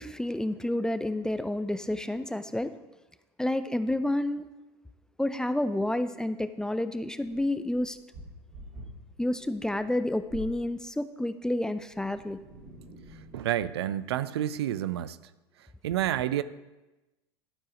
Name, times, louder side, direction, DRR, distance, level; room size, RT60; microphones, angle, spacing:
voice 1, 0.0-2.7 3.4-4.5 5.2-8.0 9.2-12.4, left 1 dB, 5° left, 12 dB, 0.4 m, -29 dB
sound 1, 7.2-10.6 11.8-13.5, equal, 55° right, 2.4 m, -47 dB
voice 2, 13.3-15.2 15.8-16.4, right 12 dB, 70° right, 15 dB, 0.4 m, -29 dB
12.0 x 4.8 x 5.0 m, 1.1 s
hypercardioid pair, 80°, 14 cm